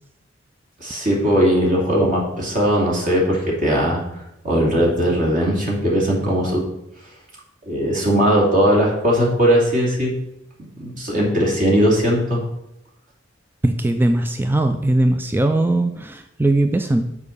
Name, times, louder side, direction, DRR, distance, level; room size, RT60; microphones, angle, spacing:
voice 1, 0.8-4.0 4.4-6.6 7.7-10.1 10.8-12.4, equal, 45° right, -3 dB, 2.7 m, -18 dB
voice 2, 13.6-17.2, right 1 dB, 10° right, 6 dB, 0.4 m, -19 dB
7.1 x 4.9 x 6.6 m, 0.84 s
head